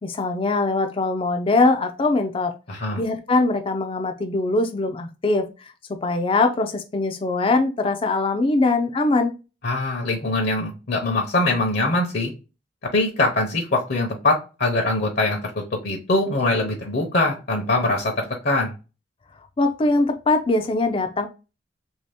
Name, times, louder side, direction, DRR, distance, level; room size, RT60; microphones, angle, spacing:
voice 1, 0.0-2.5 3.0-5.7 6.0-9.3 19.6-21.3, left 3 dB, 30° left, 0.4 m, -22 dB
voice 2, 2.7-3.0 9.6-12.3 12.9-18.7, left 2 dB, 60° left, 0.8 m, -23 dB
2.9 x 2.8 x 3.3 m
head